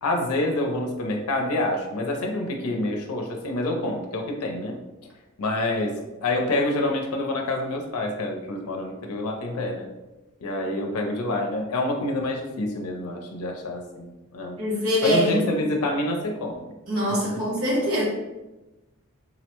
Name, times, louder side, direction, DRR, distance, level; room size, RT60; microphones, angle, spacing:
voice 1, 0.0-4.7 5.4-5.9 6.2-9.9 10.4-14.1 14.3-14.6 15.0-16.6, left 2 dB, 80° left, 2 dB, 0.5 m, -27 dB
voice 2, 14.6-15.5 16.9-18.0, equal, 80° right, -5 dB, 1.5 m, -23 dB
3.8 x 2.0 x 2.9 m, 1.1 s
head